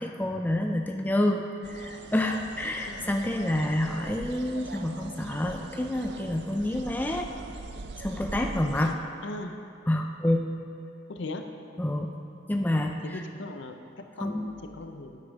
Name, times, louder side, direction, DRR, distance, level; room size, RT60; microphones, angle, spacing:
voice 1, 0.0-7.3 8.0-9.0 9.9-10.4 11.8-12.1 12.5-13.2 14.2-14.5, left 1 dB, 10° left, 3 dB, 0.3 m, -28 dB
sound 1, 1.6-8.9, right 3 dB, 60° right, 0.4 m, -41 dB
voice 2, 9.2-9.5 11.1-11.5 13.0-13.8 14.2-15.2, left 2 dB, 75° left, 6 dB, 0.6 m, -38 dB
9.1 x 8.5 x 3.5 m, 2.6 s
head